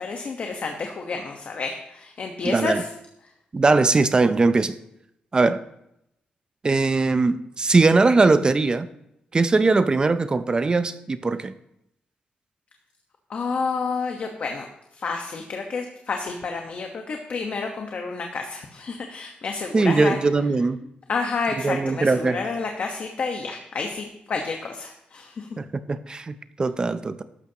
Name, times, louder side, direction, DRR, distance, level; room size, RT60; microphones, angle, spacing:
voice 1, 0.0-2.9 13.3-14.6 14.9-20.2 21.1-25.5, left 4 dB, 55° left, 1.2 m, -30 dB
voice 2, 2.4-2.8 3.5-4.7 5.3-5.6 6.6-8.9 9.3-11.5 19.7-20.8 21.6-22.4 25.6-27.2, right 3 dB, 30° right, 0.5 m, -20 dB
14.0 x 12.0 x 2.9 m
wide cardioid pair, 120°, 3 cm